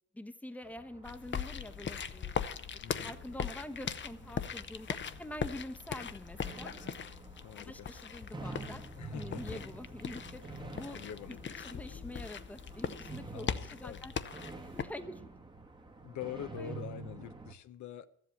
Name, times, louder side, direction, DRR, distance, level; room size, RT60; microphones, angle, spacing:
voice 1, 0.1-2.5 3.0-6.7 7.6-8.8 9.1-11.0 11.3-14.1 14.7-15.2 16.6-16.7 17.1-17.2, left 1 dB, 5° left, 7 dB, 1.0 m, -46 dB
sound 1, 0.6-17.5, right 3 dB, 15° right, 1.2 m, -49 dB
sound 2, 1.0-14.8, left 7 dB, 40° left, 0.8 m, -40 dB
voice 2, 2.8-3.2 7.4-7.9 9.0-9.6 10.9-12.0 13.3-13.6 13.8-14.0 16.0-18.1, left 10 dB, 70° left, 11 dB, 0.8 m, -45 dB
13.0 x 7.9 x 8.2 m, 0.69 s
cardioid pair, 90°, 30 cm